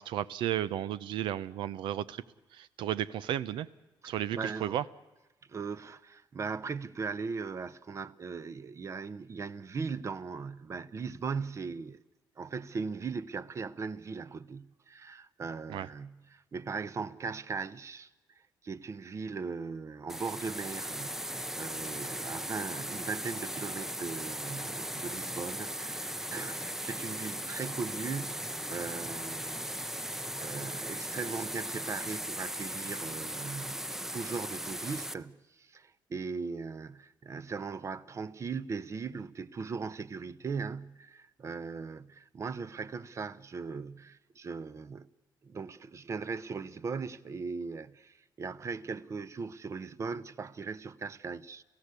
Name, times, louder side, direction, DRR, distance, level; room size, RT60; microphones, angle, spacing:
voice 1, 0.0-2.2 2.5-3.7 4.0-4.8 15.7-15.9, right 11 dB, 85° right, 0.8 m, -33 dB
voice 2, 4.0-4.8 5.5-12.0 12.4-18.1 18.6-29.8 30.1-45.1 45.4-51.6, right 5 dB, 35° right, 0.9 m, -39 dB
sound 1, 20.1-35.1, equal, 5° right, 0.7 m, -38 dB
30.0 x 16.0 x 8.3 m
cardioid pair, 110°, 8 cm